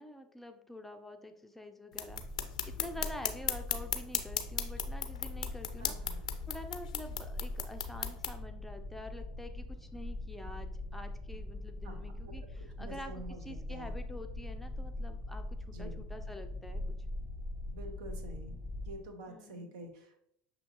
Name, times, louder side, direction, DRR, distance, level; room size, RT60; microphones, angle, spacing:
voice 1, 0.0-2.2 2.6-6.0 6.5-16.8 19.3-19.8, left 1 dB, 5° left, 5 dB, 0.5 m, -47 dB
sound 1, 1.9-8.3, left 9 dB, 85° left, 0.4 m, -37 dB
sound 2, 2.1-18.9, left 1 dB, 10° right, 1.3 m, -42 dB
voice 2, 5.8-6.2 11.8-13.9 15.7-16.1 17.7-18.6 18.8-20.3, right 1 dB, 70° right, 4 dB, 0.8 m, -48 dB
6.3 x 2.8 x 3.0 m, 0.73 s
hypercardioid pair, 80°, 4 cm